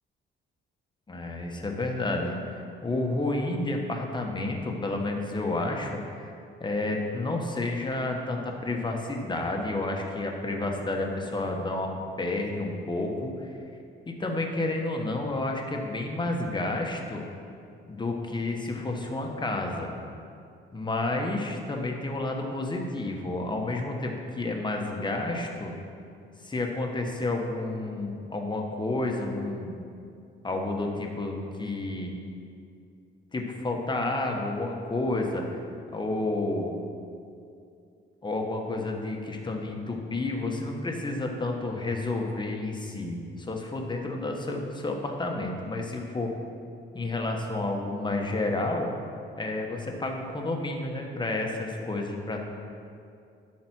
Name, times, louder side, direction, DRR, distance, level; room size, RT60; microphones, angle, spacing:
voice 1, 1.1-6.3 6.6-13.5 14.1-17.3 17.9-19.9 20.7-25.7 26.4-29.8 30.4-32.2 33.3-35.5 35.9-36.7 38.2-46.3 46.9-48.9 49.4-52.4, left 2 dB, 20° left, 1 dB, 1.2 m, -30 dB
10.5 x 4.3 x 6.2 m, 2.5 s
cardioid pair, 90°, 20 cm